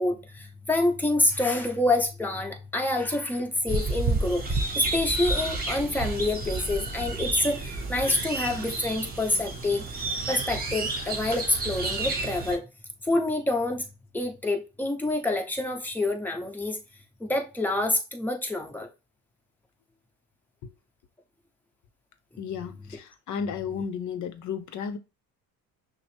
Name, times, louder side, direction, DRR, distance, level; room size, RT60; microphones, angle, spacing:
voice 1, 0.0-9.8 10.3-12.6 13.1-13.9 14.1-16.8 17.2-18.9, left 2 dB, 5° left, 0.9 m, -27 dB
sound 1, 3.7-12.6, right 3 dB, 25° right, 1.3 m, -30 dB
voice 2, 22.4-25.0, left 7 dB, 55° left, 0.8 m, -33 dB
5.9 x 2.0 x 3.4 m
supercardioid pair, 90°, 35 cm